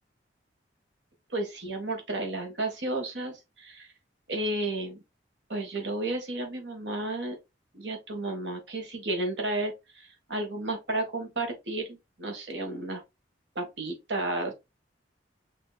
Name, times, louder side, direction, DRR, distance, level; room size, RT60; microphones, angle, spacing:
voice 1, 1.3-3.9 4.3-5.0 5.5-7.4 7.7-13.0 13.5-14.5, right 2 dB, 75° right, 1.6 m, -32 dB
6.2 x 2.9 x 2.3 m
head